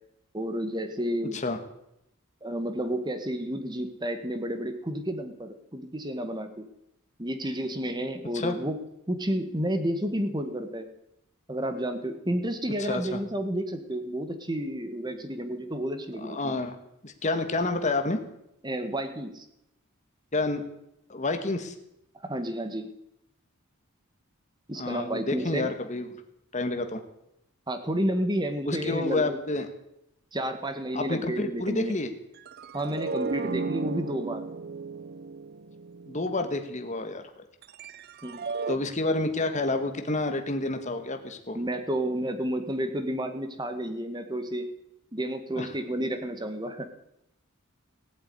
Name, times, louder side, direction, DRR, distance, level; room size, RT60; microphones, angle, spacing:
voice 1, 0.3-1.4 2.4-6.7 7.2-8.8 9.1-10.9 11.5-16.6 18.6-19.4 22.2-22.9 24.7-25.7 27.7-29.4 30.3-32.0 32.7-34.4 38.2-38.5 41.5-44.7 45.1-46.9, right 1 dB, 20° right, 8 dB, 1.5 m, -31 dB
voice 2, 12.9-13.2 16.2-16.8 17.0-18.2 20.3-20.6 21.1-21.7 24.8-26.1 26.5-27.0 28.6-29.7 30.9-32.1 36.1-37.2 38.7-41.6 45.6-45.7, left 2 dB, 35° left, 6 dB, 1.5 m, -29 dB
sound 1, 32.4-36.6 37.6-38.8, right 4 dB, 45° right, 0.6 m, -35 dB
18.0 x 8.3 x 9.5 m, 0.82 s
head